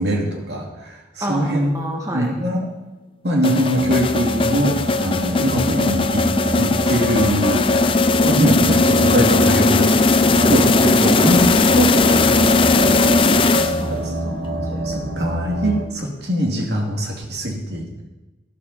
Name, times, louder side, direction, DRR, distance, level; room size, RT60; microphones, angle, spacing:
voice 1, 0.0-1.8 2.1-2.7 3.2-6.2 6.6-11.5 11.8-12.4 13.9-14.1 14.7-17.9, equal, 75° right, 0 dB, 2.6 m, -22 dB
voice 2, 1.2-2.3 10.3-10.6 11.0-11.4 12.3-15.0, right 1 dB, 20° right, 0 dB, 1.6 m, -30 dB
sound 1, 3.4-14.1, left 3 dB, 30° left, 0.5 m, -18 dB
sound 2, 3.7-15.9, right 1 dB, 90° right, 1.5 m, -27 dB
13.0 x 13.0 x 4.2 m, 1.1 s
head